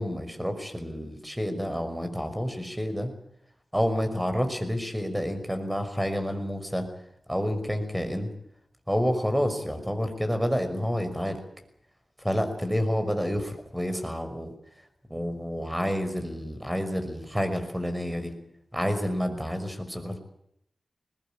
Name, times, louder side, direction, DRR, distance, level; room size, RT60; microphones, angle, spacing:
voice 1, 0.0-3.1 3.7-6.9 7.3-8.3 8.9-11.4 12.2-14.5 15.1-18.3 18.7-20.2, equal, 5° right, 8 dB, 5.8 m, -29 dB
22.0 x 19.5 x 9.0 m, 0.76 s
cardioid pair, 60°, 0 cm